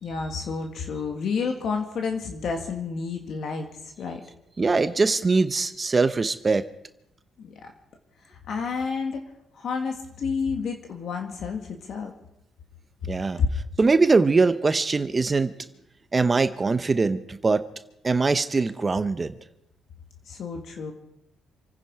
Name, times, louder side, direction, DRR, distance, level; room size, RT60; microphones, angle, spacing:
voice 1, 0.0-4.2 7.4-7.7 8.2-9.3 9.5-12.1 13.4-13.5 20.3-20.9, left 5 dB, 65° left, 3 dB, 1.9 m, -30 dB
voice 2, 4.6-6.7 13.1-13.4 13.8-15.5 16.1-17.6 18.0-19.3, right 3 dB, 30° right, 11 dB, 0.8 m, -22 dB
27.5 x 10.0 x 4.8 m, 0.83 s
cardioid pair, 90°, 0 cm